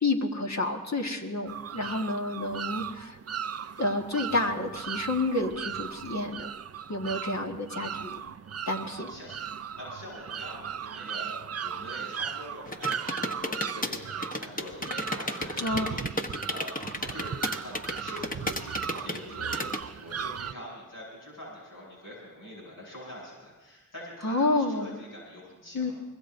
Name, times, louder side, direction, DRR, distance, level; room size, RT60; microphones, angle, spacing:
voice 1, 0.0-3.2 3.8-6.5 6.9-8.2 8.7-9.1 15.6-15.9 24.2-24.9 25.7-25.9, left 2 dB, 55° left, 2 dB, 1.7 m, -29 dB
sound 1, 1.5-20.5, right 8 dB, 50° right, 0.4 m, -37 dB
voice 2, 9.0-9.4 9.8-16.1 16.5-25.9, left 1 dB, 75° left, -6 dB, 7.9 m, -44 dB
sound 2, 12.7-19.8, left 1 dB, 25° left, 1.2 m, -33 dB
24.5 x 21.0 x 2.7 m, 1.1 s
cardioid pair, 55°, 33 cm